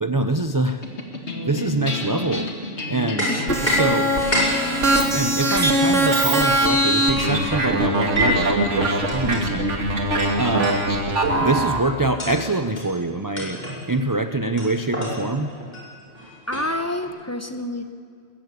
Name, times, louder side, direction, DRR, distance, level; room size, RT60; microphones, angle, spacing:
voice 1, 0.0-0.8 1.5-2.5 2.8-3.4 3.6-4.1 5.1-9.8 10.3-10.9 11.4-13.6 13.9-15.5, right 2 dB, 20° right, 8 dB, 0.6 m, -24 dB
sound 1, 0.8-11.4, left 2 dB, 70° left, 2.4 m, -32 dB
sound 2, 3.2-3.8 4.1-6.3 6.6-8.5 9.1-9.4 10.2-10.3 10.6-10.8 11.2-11.5 12.0-12.4 12.8-12.9 13.4-13.8 14.6-17.1, equal, 40° left, 5.8 m, -28 dB
voice 2, 3.2-3.8 16.5-17.8, left 1 dB, 15° left, 6 dB, 1.1 m, -28 dB
sound 3, 3.5-11.8, right 1 dB, 90° right, 2.5 m, -22 dB
21.0 x 15.0 x 8.4 m, 2.2 s
omnidirectional pair, 1.2 m